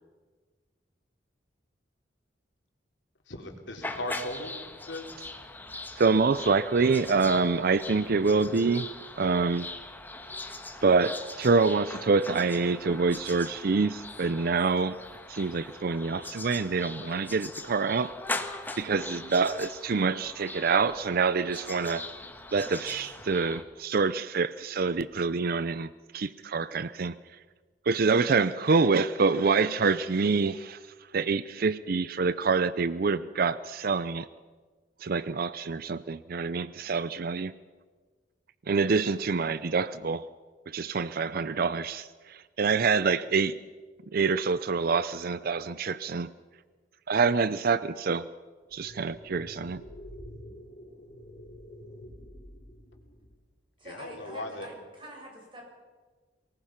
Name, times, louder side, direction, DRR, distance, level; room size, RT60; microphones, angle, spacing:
voice 1, 3.3-5.0 17.0-17.2 53.8-54.7, left 1 dB, 80° left, 3 dB, 3.3 m, -38 dB
sound 1, 3.8-23.6, left 2 dB, 10° left, 1.5 m, -41 dB
voice 2, 6.0-9.7 10.8-15.0 15.3-18.1 18.8-22.1 22.5-27.1 27.9-30.8 31.1-34.3 35.0-37.5 38.7-40.3 40.7-43.5 44.1-46.3 47.1-48.3 48.7-49.8, right 4 dB, 55° right, 15 dB, 0.5 m, -26 dB
sound 2, 48.7-53.5, equal, 55° left, 3.4 m, -48 dB
voice 3, 53.8-55.6, equal, 30° right, 0 dB, 6.6 m, -46 dB
23.5 x 19.5 x 5.8 m, 1.4 s
head